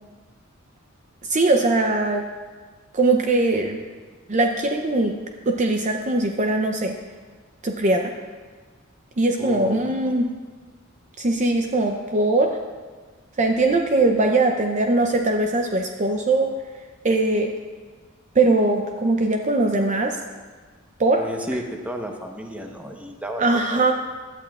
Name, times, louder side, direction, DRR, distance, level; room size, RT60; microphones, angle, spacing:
voice 1, 1.3-2.3 2.9-3.8 4.3-5.2 5.5-7.0 7.6-8.1 9.2-10.3 11.2-12.6 13.4-16.6 17.0-17.5 18.4-20.2 21.0-21.2 23.4-23.9, right 2 dB, 35° right, 3 dB, 0.6 m, -21 dB
voice 2, 9.4-10.2 21.2-23.9, equal, 5° right, 2 dB, 1.0 m, -32 dB
16.5 x 11.5 x 2.4 m, 1.4 s
head